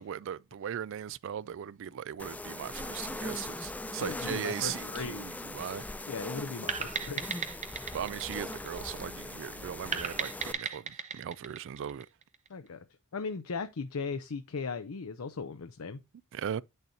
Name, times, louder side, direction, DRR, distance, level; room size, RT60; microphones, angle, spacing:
voice 1, 0.0-5.9 7.9-12.1 16.3-16.6, right 9 dB, 60° right, 0.3 m, -38 dB
sound 1, 2.2-10.5, left 2 dB, 5° left, 0.4 m, -40 dB
voice 2, 4.0-5.2 6.1-7.3 12.5-12.8 13.1-16.0, left 4 dB, 75° left, 0.6 m, -37 dB
sound 2, 6.7-9.2 9.9-12.5, right 6 dB, 35° right, 0.8 m, -36 dB
8.4 x 6.5 x 2.7 m
head